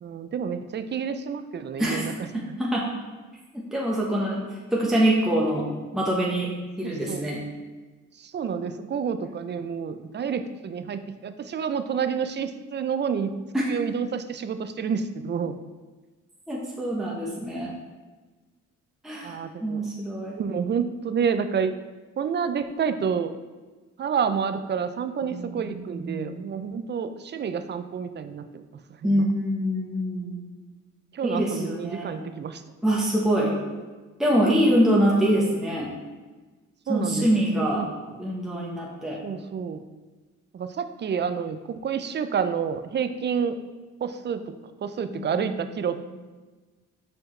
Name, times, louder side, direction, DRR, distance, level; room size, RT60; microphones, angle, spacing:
voice 1, 0.0-2.4 6.8-7.2 8.2-13.3 13.7-15.6 19.2-19.8 20.4-21.7 22.2-23.3 24.0-28.6 31.1-32.6 34.5-34.6 36.9-37.3 37.5-37.9 39.2-39.8 40.5-43.6 44.0-44.5 44.8-46.2, right 7 dB, 35° right, 10 dB, 0.4 m, -29 dB
voice 2, 2.3-2.8 3.5-5.7 5.9-6.5 6.8-7.4 13.5-13.6 16.5-17.7 19.0-20.4 25.2-26.5 29.0-30.4 31.2-32.2 32.8-33.5 34.2-35.9 36.9-37.8 38.2-39.2 45.1-45.5 45.9-46.1, equal, ahead, -4 dB, 1.0 m, -25 dB
6.3 x 4.6 x 3.2 m, 1.3 s
cardioid pair, 90°, 30 cm